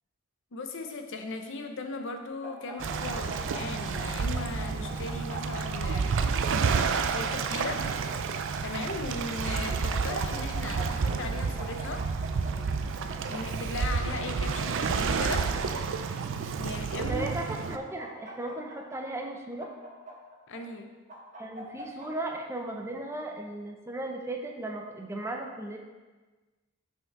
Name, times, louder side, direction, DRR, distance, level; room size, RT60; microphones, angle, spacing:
voice 1, 0.5-6.1 7.1-7.9 8.6-12.1 13.3-15.5 16.6-17.3 20.5-20.9, left 3 dB, 65° left, 5 dB, 0.8 m, -37 dB
sound 1, 2.4-4.1 4.3-6.2 6.7-8.9 9.7-10.8 11.1-11.2 11.6-12.5 13.1-14.2 14.7-15.7 16.5-17.4 17.7-19.0 19.6-20.6 21.1-22.1, right 1 dB, 35° right, 1.7 m, -43 dB
Waves surf, 2.8-17.8, right 5 dB, 65° right, 0.4 m, -30 dB
voice 2, 17.1-19.7 21.4-25.8, right 2 dB, 15° right, 2 dB, 0.7 m, -36 dB
5.9 x 5.7 x 4.6 m, 1.3 s
head